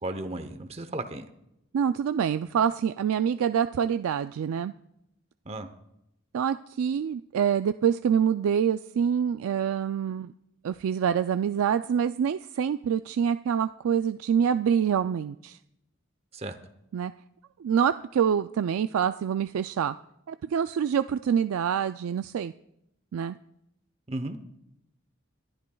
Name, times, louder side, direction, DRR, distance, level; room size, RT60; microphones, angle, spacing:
voice 1, 0.0-1.3 5.5-5.7 16.3-16.6 24.1-24.4, right 2 dB, 30° right, 8 dB, 0.8 m, -34 dB
voice 2, 1.7-4.7 6.3-10.3 10.6-15.6 16.9-17.1 17.6-20.0 20.3-22.5 23.1-23.4, right 8 dB, 85° right, 10 dB, 0.3 m, -26 dB
25.0 x 11.5 x 2.3 m, 0.82 s
head